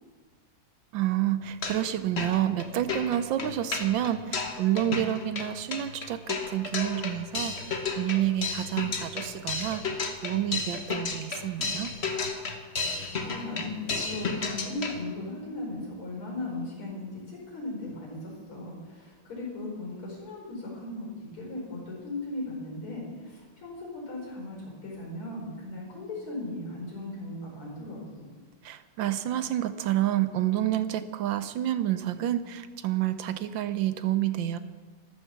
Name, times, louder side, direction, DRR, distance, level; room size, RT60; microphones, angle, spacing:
voice 1, 0.9-9.8 10.2-11.9 28.6-34.6, right 12 dB, 70° right, 12 dB, 1.3 m, -29 dB
sound 1, 1.4-1.9 2.2-15.0, left 4 dB, 35° left, 1.4 m, -33 dB
voice 2, 12.8-28.3, left 2 dB, 80° left, -2 dB, 5.7 m, -37 dB
13.5 x 12.5 x 7.0 m, 1.5 s
omnidirectional pair, 2.3 m